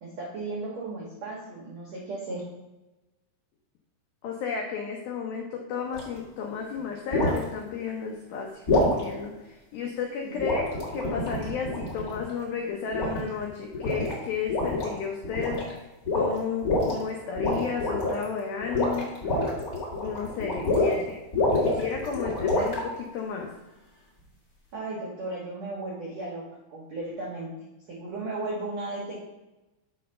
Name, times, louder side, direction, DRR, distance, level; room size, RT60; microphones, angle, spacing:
voice 1, 0.0-2.5 10.2-10.5 24.7-26.4 26.7-29.2, right 2 dB, 75° right, -4 dB, 1.5 m, -35 dB
voice 2, 4.2-10.6 10.9-15.8 16.1-19.1 20.0-21.1 21.6-23.5, left 6 dB, 85° left, 1 dB, 2.1 m, -33 dB
sound 1, 5.9-6.2 7.1-7.4 8.7-9.0 10.4-12.3 12.9-13.4 13.7-14.1 14.5-14.9 15.2-15.7 16.0-16.9 17.4-18.2 18.6-21.0 21.3-22.8, left 2 dB, 35° left, 1.4 m, -26 dB
6.6 x 4.4 x 6.6 m, 1.0 s
omnidirectional pair, 5.5 m